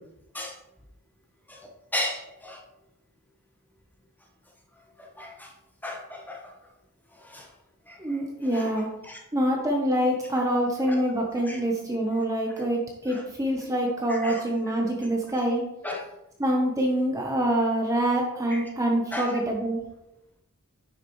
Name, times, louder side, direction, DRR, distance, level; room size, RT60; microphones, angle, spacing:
voice 1, 1.9-2.6 5.0-5.5 5.8-6.5 7.3-7.5 7.9-8.0 8.5-8.7 9.0-9.2 10.9-11.0 11.5-11.6 13.1-13.2 14.1-14.4 15.8-16.0 18.5-18.6 19.1-19.3, left 1 dB, 10° left, 0 dB, 1.2 m, -34 dB
voice 2, 8.0-8.9 9.3-15.6 16.4-19.8, right 1 dB, 15° right, -1 dB, 0.9 m, -25 dB
9.6 x 6.0 x 3.1 m, 0.89 s
head